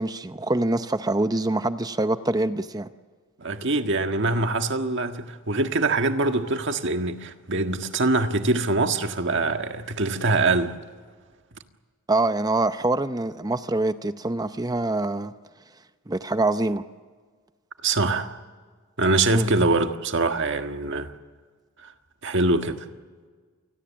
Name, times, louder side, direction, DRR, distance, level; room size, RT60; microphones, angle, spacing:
voice 1, 0.0-2.9 12.1-15.3 16.1-16.8 19.3-19.5, right 2 dB, 15° right, 0.7 m, -25 dB
voice 2, 3.4-10.8 17.8-18.3 19.0-21.1 21.8-21.9 22.2-22.9, right 2 dB, 55° right, 1.6 m, -24 dB
28.0 x 20.5 x 7.4 m
head